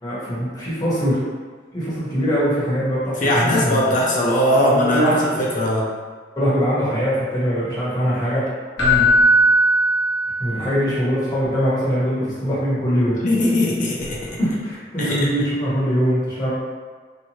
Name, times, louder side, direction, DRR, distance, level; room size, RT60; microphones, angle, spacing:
voice 1, 0.0-1.2 1.7-3.8 4.5-5.2 6.4-8.4 9.3-9.4 10.4-13.2 14.4-16.5, equal, 20° left, -10 dB, 0.8 m, -22 dB
voice 2, 3.2-5.9 8.8-9.1 13.2-14.2 15.0-15.3, left 1 dB, 45° left, -4 dB, 0.5 m, -20 dB
Keyboard (musical), 8.8-10.7 14.0-14.1, equal, 80° left, 0.7 m, -17 dB
2.8 x 2.2 x 2.7 m, 1.5 s
head